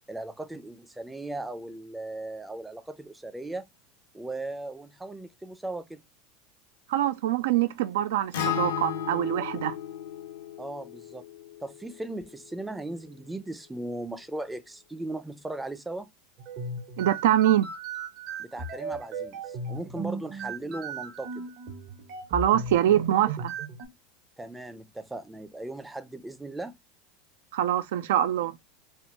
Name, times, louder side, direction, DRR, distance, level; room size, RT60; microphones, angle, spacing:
voice 1, 0.1-3.6 4.1-6.0 10.6-11.2 11.6-16.1 18.4-21.5 24.4-26.7, right 2 dB, 10° right, 0.5 m, -37 dB
voice 2, 6.9-9.7 17.0-17.7 22.3-23.5 27.5-28.6, right 12 dB, 70° right, 0.3 m, -24 dB
Acoustic guitar, 8.3-12.6, left 9 dB, 75° left, 0.6 m, -34 dB
sound 1, 16.4-23.9, right 3 dB, 50° right, 0.8 m, -36 dB
3.5 x 2.1 x 2.4 m
hypercardioid pair, 85°, 0 cm